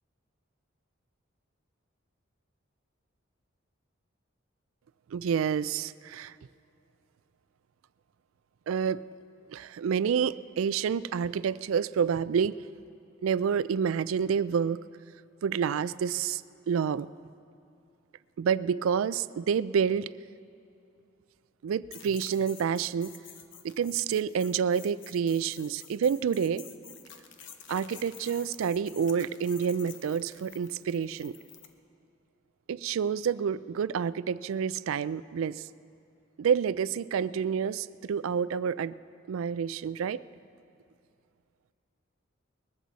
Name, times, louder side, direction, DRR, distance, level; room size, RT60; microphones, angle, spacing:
voice 1, 5.1-6.3 8.7-9.0 9.5-12.6 13.2-14.8 15.4-16.4 16.7-17.1 18.4-20.1 21.6-23.2 23.6-26.6 27.7-31.4 32.7-35.7 36.4-38.9 39.3-40.2, right 7 dB, 85° right, 17 dB, 0.3 m, -28 dB
sound 1, 21.9-31.7, left 8 dB, 65° left, 0.9 m, -50 dB
21.0 x 14.5 x 4.1 m, 2.5 s
head